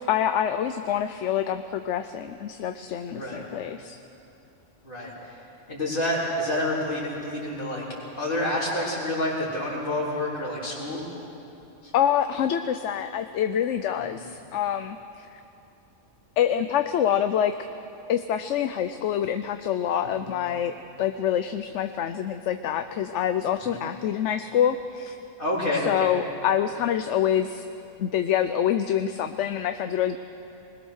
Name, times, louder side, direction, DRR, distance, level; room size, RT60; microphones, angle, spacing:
voice 1, 0.1-4.0 11.9-15.3 16.4-17.5 18.1-25.2 25.9-27.6 28.0-30.2, left 9 dB, 80° left, 9 dB, 1.0 m, -26 dB
voice 2, 3.1-3.4 4.8-7.8 8.2-11.1 11.8-11.9 14.0-14.2 20.0-20.2 23.6-23.8 25.4-26.1, left 1 dB, 45° left, -7 dB, 4.0 m, -29 dB
21.0 x 21.0 x 6.4 m, 2.8 s
omnidirectional pair, 1.2 m